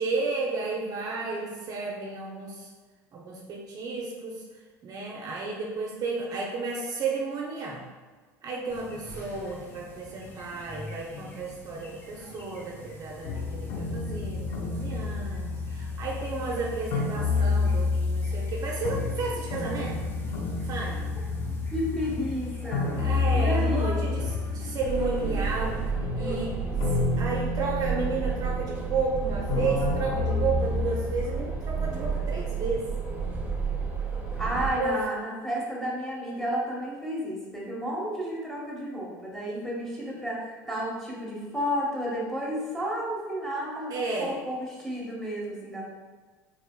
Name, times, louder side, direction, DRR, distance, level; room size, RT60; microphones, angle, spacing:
voice 1, 0.0-2.7 3.1-4.4 4.8-7.9 8.4-20.0 20.7-21.1 23.0-25.8 26.1-26.6 27.2-32.9 34.7-35.0 43.9-44.4, right 3 dB, 45° right, -2 dB, 0.6 m, -32 dB
sound 1, 8.7-25.9, left 3 dB, 25° left, 0.7 m, -44 dB
sound 2, 13.2-25.3 25.6-32.0, left 3 dB, 60° left, 0.6 m, -30 dB
voice 2, 21.7-22.9 23.3-24.0 34.4-45.8, equal, 5° left, -5 dB, 1.3 m, -32 dB
sound 3, 24.9-34.7, right 5 dB, 15° right, 1.0 m, -31 dB
3.3 x 3.2 x 2.2 m, 1.4 s
hypercardioid pair, 75°, 9 cm